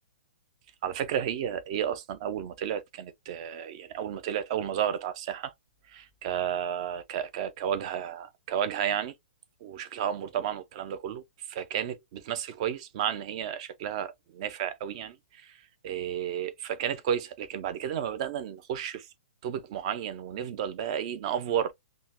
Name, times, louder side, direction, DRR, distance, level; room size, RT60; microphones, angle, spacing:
voice 1, 0.8-5.5 5.9-9.1 9.6-19.1 19.4-21.7, right 9 dB, 25° right, 0.4 m, -32 dB
3.6 x 2.0 x 2.7 m
hypercardioid pair, 170°, 7 cm